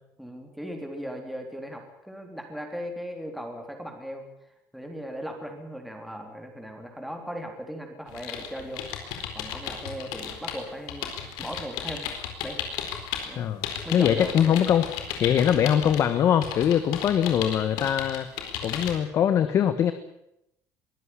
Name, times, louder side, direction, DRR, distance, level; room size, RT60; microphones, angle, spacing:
voice 1, 0.2-4.3 4.7-12.1 12.4-12.7 13.3-13.4 13.8-14.6, equal, ahead, 2 dB, 3.6 m, -38 dB
sound 1, 8.1-13.3 13.6-16.0 16.4-18.9, left 9 dB, 85° left, 4.4 m, -34 dB
voice 2, 13.3-13.7 13.9-14.8 15.2-18.3 18.6-19.9, left 9 dB, 45° left, 10 dB, 1.4 m, -22 dB
23.0 x 14.0 x 9.9 m, 0.82 s
cardioid pair, 145°, 7 cm